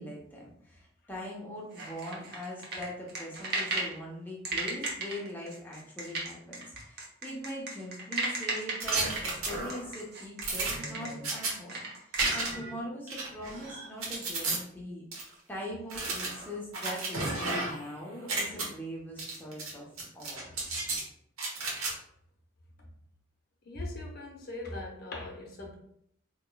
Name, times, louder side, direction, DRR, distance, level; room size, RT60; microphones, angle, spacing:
voice 1, 0.0-15.1 15.5-19.9 20.1-20.5, equal, 10° left, -3 dB, 0.8 m, -41 dB
sound 1, 1.7-4.0 4.4-12.4, right 2 dB, 50° right, 0.9 m, -34 dB
sound 2, 8.8-9.9 10.4-11.5 12.2-12.7 13.1-14.6 15.1-15.2 15.9-17.9 18.2-18.6 19.2-19.7 20.0-21.0 21.4-21.9, right 3 dB, 85° right, 1.1 m, -33 dB
voice 2, 23.6-25.8, left 2 dB, 45° left, 0 dB, 0.7 m, -40 dB
4.4 x 2.9 x 2.3 m, 0.71 s
head